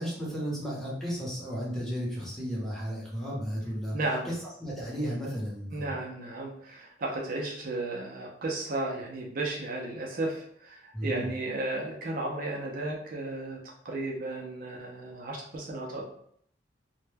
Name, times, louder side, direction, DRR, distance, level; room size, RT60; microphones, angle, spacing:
voice 1, 0.0-4.0 4.2-5.9 10.9-11.3, equal, ahead, -7 dB, 0.7 m, -34 dB
voice 2, 3.9-4.3 5.7-16.1, right 2 dB, 50° right, -1 dB, 0.4 m, -34 dB
2.1 x 2.1 x 3.2 m, 0.66 s
head